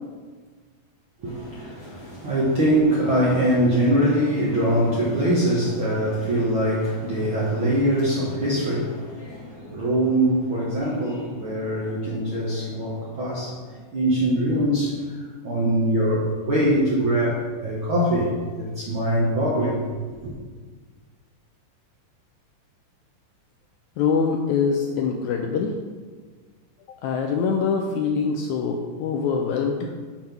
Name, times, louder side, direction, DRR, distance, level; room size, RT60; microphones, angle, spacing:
voice 1, 1.2-19.8 20.2-20.3, right 1 dB, 70° right, -6 dB, 1.2 m, -23 dB
voice 2, 24.0-25.7 27.0-29.9, left 5 dB, 80° left, 2 dB, 1.7 m, -24 dB
7.3 x 3.6 x 5.8 m, 1.5 s
omnidirectional pair, 3.8 m